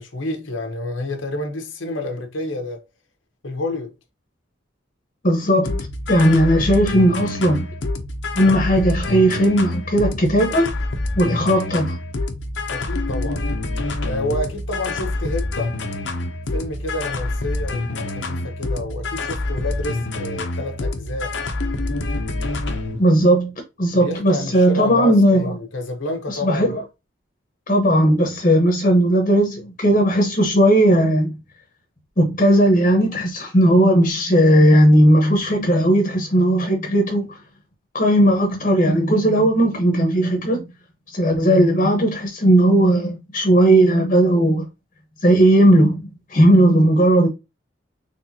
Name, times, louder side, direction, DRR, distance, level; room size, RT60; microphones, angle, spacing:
voice 1, 0.0-2.8 3.4-3.9 12.7-13.4 14.0-15.8 16.5-21.4 23.9-26.8, left 2 dB, 90° left, 0.9 m, -29 dB
voice 2, 5.2-7.7 8.4-10.7 11.2-12.0 23.0-25.6 26.3-26.8 27.7-31.4 32.2-37.4 37.9-40.7 41.1-44.6 45.2-47.3, right 1 dB, 40° left, 0.9 m, -16 dB
sound 1, 5.7-23.0, left 2 dB, 70° left, 0.7 m, -26 dB
4.1 x 3.3 x 2.7 m
head